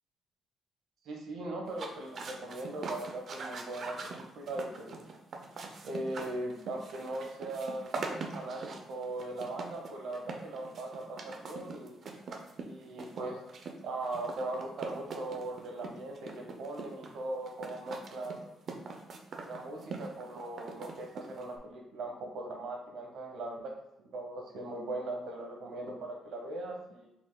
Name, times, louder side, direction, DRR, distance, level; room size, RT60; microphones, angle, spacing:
voice 1, 1.0-5.0 5.8-12.0 12.6-18.5 19.4-23.7 24.0-27.1, right 2 dB, 75° right, 2 dB, 1.0 m, -39 dB
sound 1, 1.7-21.6, right 4 dB, 55° right, 0.6 m, -43 dB
5.8 x 3.6 x 2.2 m, 0.89 s
cardioid pair, 90°, 0 cm